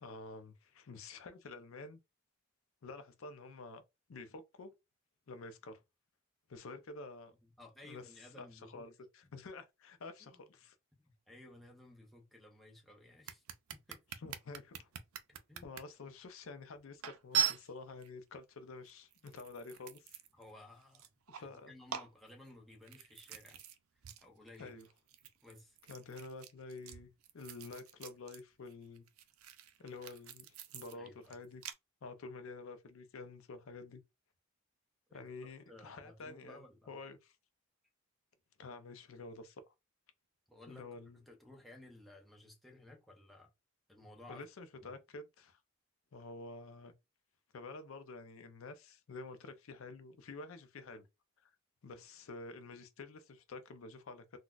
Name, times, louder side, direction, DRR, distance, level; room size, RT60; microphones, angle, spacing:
voice 1, 0.0-2.0 2.8-3.8 4.1-4.7 5.3-5.8 6.5-7.3 7.9-8.1 8.4-8.5 8.7-10.8 14.2-14.9 15.6-20.2 21.3-21.7 24.6-24.9 25.9-29.1 29.8-31.6 32.0-34.0 35.1-36.6 36.9-37.3 38.6-39.7 40.7-41.2 44.3-45.6 46.1-46.9 47.5-51.1 51.4-51.5 51.8-54.4, left 3 dB, 70° left, 0.5 m, -49 dB
voice 2, 7.4-8.9 10.2-10.4 11.3-13.4 13.7-14.0 15.5-15.7 20.3-21.1 21.4-23.6 24.2-24.8 25.4-25.8 30.9-31.4 35.1-37.0 40.5-40.9 41.1-43.5 43.9-44.4 44.8-44.9, left 1 dB, ahead, 0.6 m, -57 dB
sound 1, 13.3-15.8 16.4-16.5 17.0-18.1 18.9-20.5 20.8-21.6 21.9-23.8 24.0-24.2 24.5-28.4 28.7-31.7, right 10 dB, 85° right, 0.4 m, -41 dB
3.9 x 2.2 x 2.3 m
head